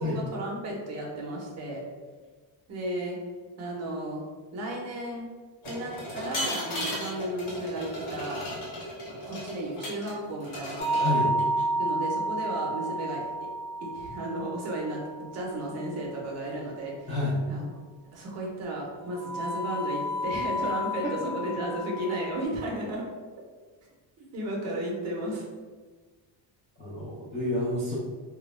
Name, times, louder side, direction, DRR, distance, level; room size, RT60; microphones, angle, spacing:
voice 1, 0.0-1.8 2.7-3.2 3.6-4.2 4.5-5.3 5.7-8.4 9.3-11.3 11.8-13.3 13.9-15.0 15.3-17.1 17.5-17.7 18.1-23.1 24.2-25.4, right 1 dB, 35° right, -2 dB, 0.5 m, -34 dB
sound 1, 5.6-10.1 10.4-11.6, left 1 dB, 75° left, 1.1 m, -35 dB
sound 2, 10.8-15.7 19.2-22.4, right 1 dB, 45° left, 0.7 m, -31 dB
voice 2, 11.0-11.3 17.1-17.4 26.8-27.9, left 2 dB, 15° left, -11 dB, 0.3 m, -29 dB
2.2 x 2.1 x 3.0 m, 1.4 s
cardioid pair, 175°, 44 cm